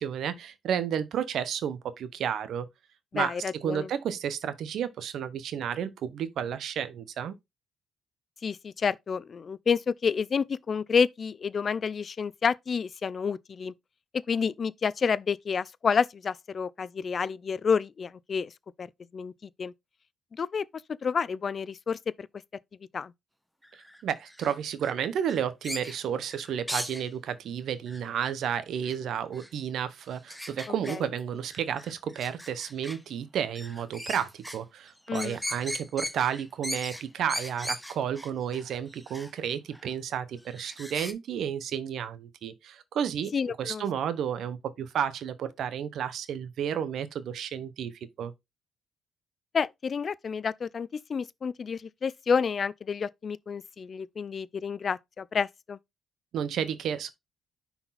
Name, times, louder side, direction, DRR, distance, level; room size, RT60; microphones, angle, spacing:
voice 1, 0.0-2.7 3.1-7.3 24.0-43.3 43.6-48.3 56.3-57.1, right 8 dB, 70° right, 0.9 m, -32 dB
voice 2, 3.1-3.9 8.4-13.7 14.1-18.5 18.8-18.9 19.1-19.7 20.3-22.3 22.9-23.1 30.9-31.1 35.1-35.4 43.3-43.8 49.5-55.8, left 6 dB, 45° left, 0.4 m, -29 dB
sound 1, 23.6-24.9 25.3-27.0 27.9-28.3 28.8-29.0 29.3-29.5 30.3-31.2 31.4-33.0 33.5-34.6 34.9-39.3 39.7-39.9 40.4-41.1, equal, ahead, 0.9 m, -39 dB
5.7 x 4.2 x 4.0 m
cardioid pair, 90°, 0 cm